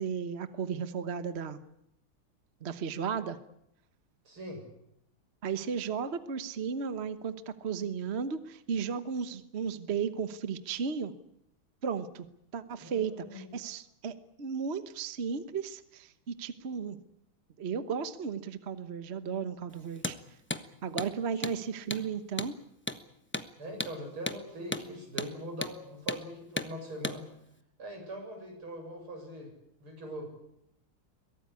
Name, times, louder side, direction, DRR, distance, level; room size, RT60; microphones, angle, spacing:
voice 1, 0.0-1.6 2.6-3.4 5.4-11.1 11.8-12.3 12.5-17.0 17.6-20.2 20.8-22.5, right 6 dB, 40° right, 11 dB, 1.0 m, -34 dB
voice 2, 4.2-4.6 12.8-13.5 21.3-21.5 23.6-27.2 27.8-29.5 29.8-30.3, equal, 75° right, 2 dB, 8.2 m, -42 dB
Hammer, 19.9-20.2 20.5-20.6 21.0-21.1 21.4-21.6 21.9-22.0 22.4-22.5 22.9-23.0 23.3-23.5 23.8-23.9 24.3-24.4 24.7-24.9 25.2-25.3 25.6-25.8 26.1-26.2 26.6-26.7 27.0-27.2, left 1 dB, 15° left, 0.4 m, -34 dB
23.0 x 17.5 x 9.8 m, 0.78 s
omnidirectional pair, 2.4 m